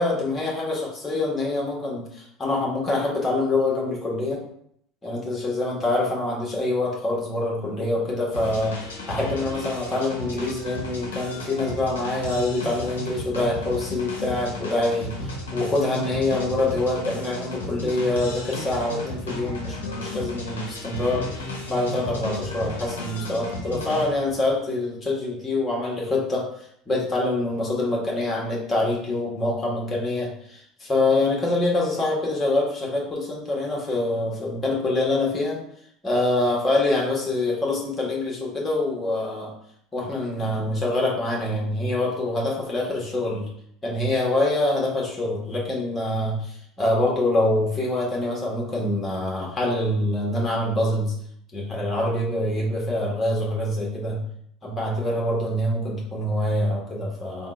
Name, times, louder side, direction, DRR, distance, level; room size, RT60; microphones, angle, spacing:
voice 1, 0.0-4.4 5.0-8.8 9.1-26.4 26.9-35.6 36.0-39.5 39.9-43.5 43.8-51.1 51.5-54.2 54.6-57.5, left 2 dB, 20° left, -4 dB, 1.5 m, -25 dB
sound 1, 8.3-24.4, left 1 dB, 75° left, 0.7 m, -34 dB
3.6 x 2.4 x 3.7 m, 0.70 s
figure-of-eight pair, 70°, 0 cm